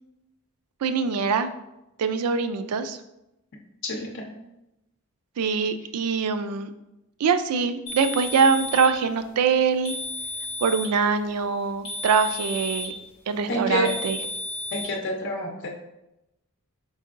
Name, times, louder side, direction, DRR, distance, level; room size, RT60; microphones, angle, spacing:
voice 1, 0.8-1.5 2.0-3.0 5.4-6.7 7.2-9.9 10.6-12.9 13.3-14.2, right 5 dB, 90° right, 9 dB, 0.4 m, -23 dB
voice 2, 3.8-4.3 13.5-14.0 14.7-15.7, left 1 dB, 55° left, -1 dB, 0.7 m, -28 dB
sound 1, 7.9-9.0 9.8-11.0 11.8-13.0 13.8-14.9, left 1 dB, 25° left, 0.9 m, -33 dB
4.4 x 4.0 x 2.5 m, 0.90 s
head